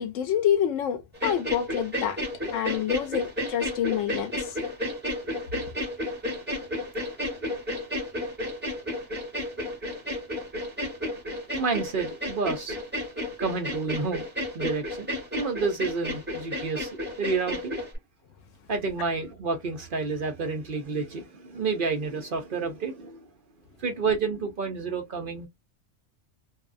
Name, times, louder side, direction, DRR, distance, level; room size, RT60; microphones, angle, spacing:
voice 1, 0.0-2.2 2.5-4.6, left 9 dB, 85° left, 1.0 m, -27 dB
sound 1, 1.1-18.0, left 1 dB, 10° right, 1.3 m, -32 dB
voice 2, 11.5-12.8 13.4-14.2 14.5-16.9 17.2-17.8 18.7-23.3 23.8-25.5, right 4 dB, 55° right, 0.7 m, -29 dB
2.6 x 2.2 x 2.5 m
omnidirectional pair, 1.3 m